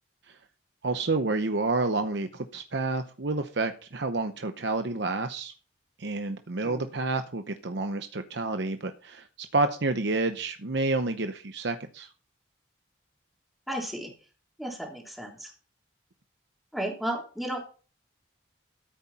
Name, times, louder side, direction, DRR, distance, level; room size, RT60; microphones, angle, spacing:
voice 1, 0.8-5.5 6.0-9.3 9.5-12.1, right 3 dB, 65° right, 7 dB, 0.9 m, -29 dB
voice 2, 13.7-14.1 14.6-15.5 16.7-17.6, right 1 dB, ahead, -2 dB, 3.4 m, -34 dB
14.0 x 8.5 x 4.3 m, 0.38 s
head